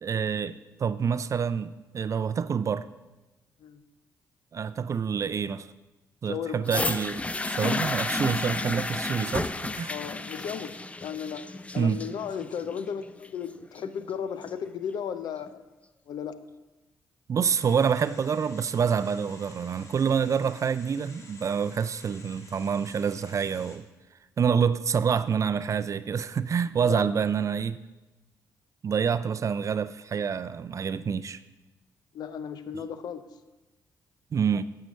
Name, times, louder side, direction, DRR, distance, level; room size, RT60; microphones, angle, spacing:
voice 1, 0.0-2.9 4.5-5.7 6.2-9.5 9.7-9.9 11.8-12.0 17.3-23.9 24.4-27.8 28.8-31.4 32.7-32.8 34.3-34.6, right 6 dB, 50° right, 14 dB, 0.4 m, -27 dB
voice 2, 6.3-6.6 9.9-15.6 16.1-16.3 26.8-27.1 32.1-33.3, left 7 dB, 75° left, 12 dB, 0.6 m, -35 dB
sound 1, 6.7-14.7 15.5-15.6, left 2 dB, 20° left, 0.5 m, -32 dB
sound 2, 17.5-23.8, left 2 dB, 45° left, 1.5 m, -51 dB
9.0 x 5.7 x 6.3 m, 1.1 s
cardioid pair, 70°, 7 cm